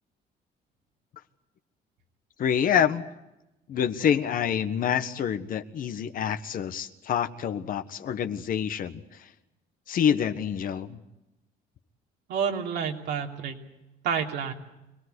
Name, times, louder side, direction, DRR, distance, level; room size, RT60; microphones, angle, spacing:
voice 1, 2.4-3.1 3.7-9.0 9.9-11.0, left 8 dB, 55° left, 10 dB, 1.4 m, -27 dB
voice 2, 12.3-13.6 14.0-14.5, right 7 dB, 80° right, 1 dB, 3.2 m, -29 dB
25.5 x 18.5 x 8.1 m, 0.95 s
cardioid pair, 110°, 17 cm